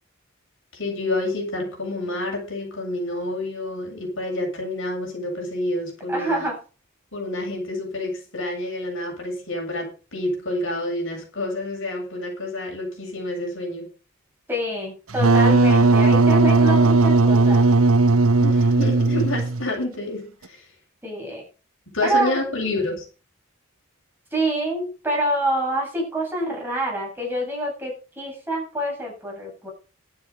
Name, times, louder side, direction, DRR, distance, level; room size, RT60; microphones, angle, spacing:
voice 1, 0.7-6.5 7.1-13.9 18.4-20.7 21.9-23.1, left 2 dB, 65° left, 7.6 m, -28 dB
voice 2, 6.1-6.6 14.5-17.6 21.0-21.4 22.0-22.4 24.3-29.7, right 1 dB, 10° right, 7.8 m, -26 dB
Wind instrument woodwind instrument, 15.1-19.7, right 3 dB, 90° right, 1.1 m, -16 dB
12.0 x 11.5 x 5.3 m
head